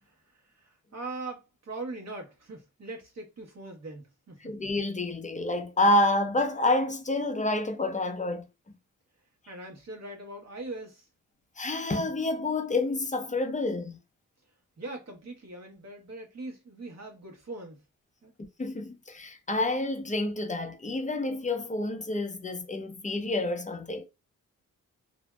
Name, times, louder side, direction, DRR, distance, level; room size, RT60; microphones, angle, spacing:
voice 1, 0.0-4.5 9.5-11.0 14.8-17.8 18.2-18.4, right 2 dB, 50° right, 1.2 m, -41 dB
voice 2, 4.4-8.4 11.6-14.0 18.6-24.1, left 2 dB, 20° left, 0.6 m, -28 dB
2.6 x 2.1 x 2.3 m
supercardioid pair, 55°, 34 cm